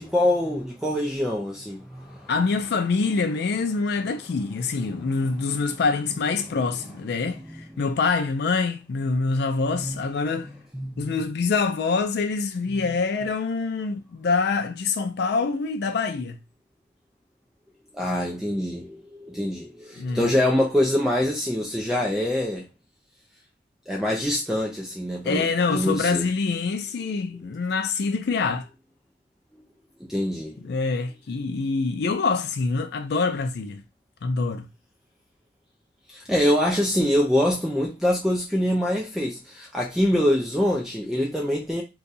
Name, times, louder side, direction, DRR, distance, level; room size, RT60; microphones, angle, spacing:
voice 1, 0.0-2.3 5.0-5.6 7.5-7.8 9.8-10.0 10.7-11.1 17.9-22.7 23.9-25.4 25.7-26.2 30.1-30.5 36.1-41.8, left 1 dB, 5° right, 0.5 m, -25 dB
voice 2, 2.3-10.5 11.0-16.4 20.0-20.3 25.2-28.7 30.6-33.8 34.2-34.7, left 4 dB, 65° left, 0.4 m, -25 dB
2.6 x 2.4 x 3.9 m
head